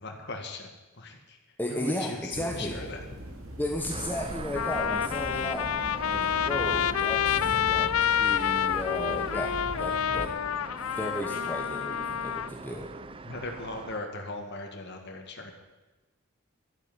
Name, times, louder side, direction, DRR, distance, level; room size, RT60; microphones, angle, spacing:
voice 1, 0.0-1.4 1.7-3.0 13.2-15.5, left 2 dB, 50° left, 2 dB, 1.9 m, -38 dB
voice 2, 1.6-2.8 3.6-5.7 6.0-10.3 10.9-12.9, left 1 dB, 10° left, 0 dB, 1.2 m, -34 dB
sound 1, 2.3-10.3, equal, 65° right, 2.9 m, -41 dB
Trumpet, 3.8-3.9 4.5-12.5, left 9 dB, 80° left, 0.4 m, -28 dB
sound 2, 3.9-14.0, right 3 dB, 25° right, 0.5 m, -42 dB
12.0 x 8.8 x 9.1 m, 1.1 s
head